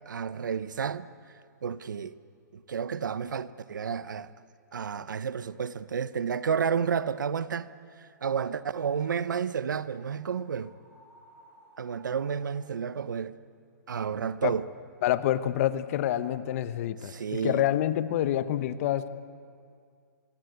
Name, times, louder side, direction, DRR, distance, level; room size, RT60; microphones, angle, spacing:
voice 1, 0.1-1.1 1.6-2.1 2.5-4.3 4.7-7.7 8.2-10.7 11.8-13.3 13.9-14.7 17.1-17.6, right 7 dB, 85° right, 0.9 m, -31 dB
sound 1, 7.0-12.8, right 1 dB, 20° right, 6.4 m, -59 dB
voice 2, 15.0-19.1, left 12 dB, 50° left, 1.0 m, -27 dB
25.0 x 22.0 x 8.2 m
hypercardioid pair, 135°, 10 cm